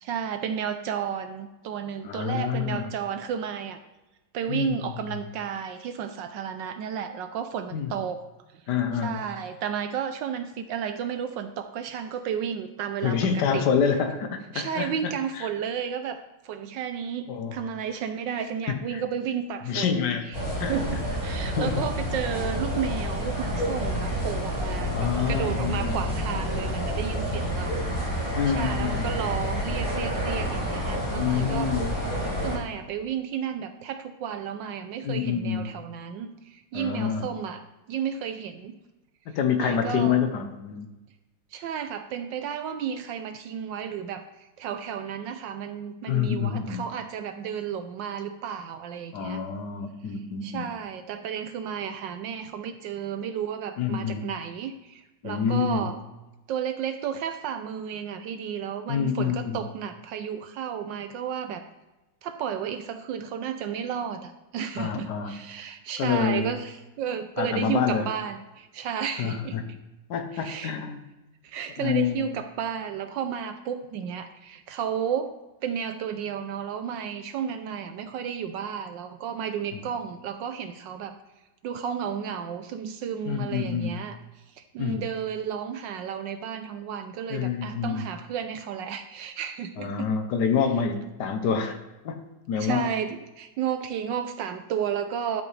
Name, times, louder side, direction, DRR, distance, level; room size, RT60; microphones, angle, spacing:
voice 1, 0.0-3.8 4.3-8.2 9.0-13.7 14.5-16.2 16.4-20.4 20.7-27.8 28.2-31.7 32.4-37.6 37.9-38.7 39.6-40.2 41.5-44.2 44.6-49.4 50.4-56.0 56.5-61.6 62.2-69.8 70.3-70.7 71.4-75.3 75.6-81.1 81.6-84.2 84.6-90.1 92.6-95.4, right 8 dB, 75° right, 8 dB, 1.0 m, -32 dB
voice 2, 2.0-2.9 4.5-5.0 7.7-7.9 8.7-9.2 13.0-15.5 17.3-17.6 18.7-19.0 19.7-20.3 20.6-20.8 21.3-21.9 24.9-26.0 28.4-29.1 31.2-32.0 35.0-35.7 36.7-37.3 39.3-40.9 46.1-46.9 49.1-50.7 53.8-54.3 55.2-55.9 58.9-59.6 64.8-65.4 66.0-66.4 67.4-68.1 69.2-69.6 70.1-71.0 71.8-72.3 79.7-79.8 83.2-84.0 84.8-85.0 87.3-88.1 89.8-91.8 92.0-92.9, left 7 dB, 65° left, 7 dB, 1.1 m, -27 dB
sound 1, 20.3-32.6, equal, 15° left, 2.8 m, -29 dB
12.0 x 5.3 x 3.2 m, 1.0 s
omnidirectional pair, 2.4 m